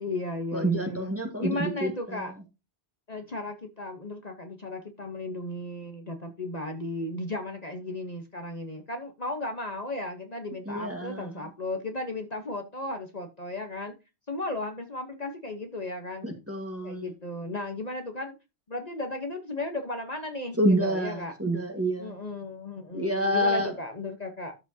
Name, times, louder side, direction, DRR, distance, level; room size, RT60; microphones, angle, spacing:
voice 1, 0.0-1.1 1.4-2.3 3.1-13.9 14.3-16.3 16.8-18.3 18.7-21.3 22.0-24.5, left 2 dB, 40° left, 1.1 m, -35 dB
voice 2, 0.5-2.2 10.6-11.3 16.2-17.1 20.6-22.2 22.9-23.7, equal, 15° right, 1.6 m, -28 dB
12.5 x 6.0 x 2.8 m
omnidirectional pair, 1.1 m